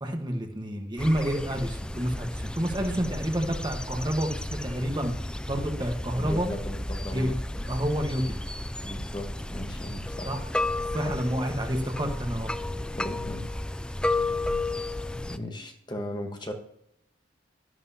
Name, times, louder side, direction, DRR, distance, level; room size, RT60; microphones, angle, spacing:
voice 1, 0.0-6.5 7.1-7.4 7.7-8.4 10.3-10.4 10.9-12.5, equal, 25° right, 3 dB, 1.4 m, -29 dB
sound 1, 1.0-15.4, left 2 dB, 5° left, 0.3 m, -33 dB
voice 2, 6.2-7.7 8.8-10.4 11.0-11.2 13.0-13.5 15.1-16.5, left 1 dB, 25° left, 3 dB, 1.3 m, -37 dB
12.0 x 11.0 x 2.9 m, 0.74 s
head